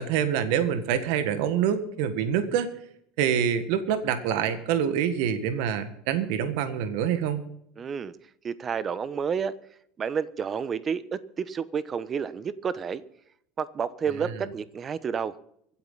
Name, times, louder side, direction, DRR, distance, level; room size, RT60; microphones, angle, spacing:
voice 1, 0.0-2.7 3.2-7.4 14.2-14.3, right 8 dB, 65° right, 10 dB, 1.6 m, -26 dB
voice 2, 7.8-8.2 8.4-9.5 10.0-13.0 13.6-15.4, right 6 dB, 35° right, 16 dB, 1.1 m, -30 dB
25.0 x 8.7 x 4.1 m, 0.72 s
hypercardioid pair, 80°, 0 cm